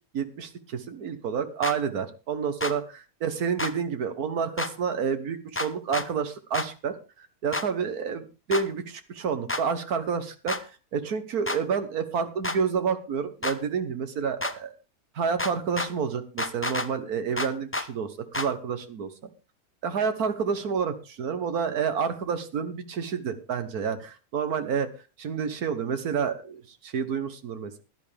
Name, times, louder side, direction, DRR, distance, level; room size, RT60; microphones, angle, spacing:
voice 1, 0.1-14.7 15.2-19.3 19.8-24.9 25.2-27.8, right 6 dB, 85° right, 9 dB, 1.7 m, -29 dB
sound 1, 1.6-1.8 2.6-2.7 3.6-3.7 4.6-4.7 5.6-6.1 6.5-6.7 7.5-7.7 8.5-8.6 9.5-9.6 10.5-10.6 11.5-11.6 12.4-12.6 13.4-13.6 14.4-14.5 15.4-15.9 16.4-16.9 17.4-17.9 18.3-18.5, left 2 dB, 10° left, 0.7 m, -29 dB
16.5 x 11.0 x 3.4 m, 0.31 s
omnidirectional pair, 1.5 m